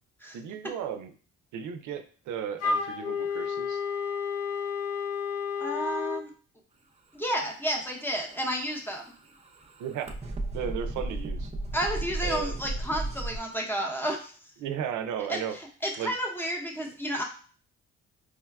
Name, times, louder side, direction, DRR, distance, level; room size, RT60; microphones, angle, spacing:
voice 1, 0.3-1.1 1.5-3.8 9.8-11.5 12.2-12.5 14.6-15.6 16.0-16.1, right 8 dB, 80° right, 8 dB, 0.5 m, -35 dB
Wind instrument woodwind instrument, 2.6-6.2, left 5 dB, 50° left, 0.7 m, -31 dB
voice 2, 5.6-6.3 7.1-9.0 11.7-14.3 15.3-15.4 15.8-17.2, equal, 5° left, 1 dB, 0.7 m, -31 dB
sound 1, 8.2-13.4, right 2 dB, 20° right, 0.5 m, -35 dB
4.7 x 2.2 x 2.3 m, 0.42 s
cardioid pair, 90°, 30 cm